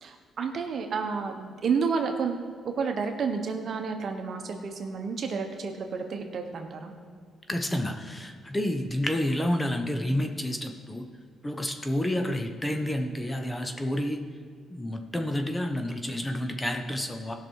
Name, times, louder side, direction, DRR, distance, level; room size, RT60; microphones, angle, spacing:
voice 1, 0.0-2.4 2.6-6.9, right 5 dB, 55° right, 5 dB, 1.2 m, -30 dB
voice 2, 7.5-11.1 11.4-14.2 14.7-17.3, left 1 dB, 15° left, 5 dB, 1.0 m, -29 dB
16.5 x 6.1 x 4.8 m, 2.1 s
cardioid pair, 90°, 0 cm